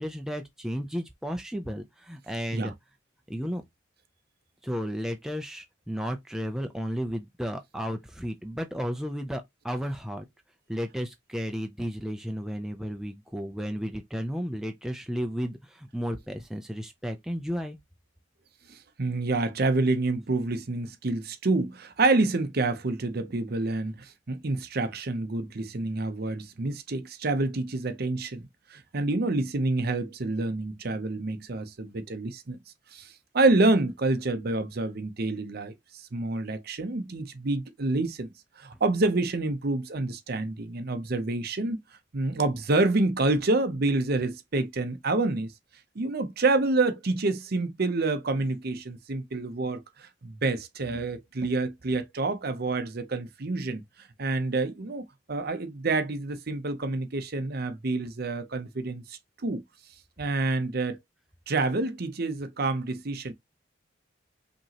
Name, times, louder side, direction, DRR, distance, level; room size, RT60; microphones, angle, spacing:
voice 1, 0.0-2.7 3.3-3.6 4.6-10.2 10.7-17.8, equal, 5° right, 0.5 m, -33 dB
voice 2, 18.7-32.6 32.9-41.8 42.1-45.5 46.0-53.8 54.2-59.6 60.2-61.0 61.5-63.3, right 2 dB, 50° right, 0.7 m, -28 dB
5.2 x 2.9 x 2.9 m
head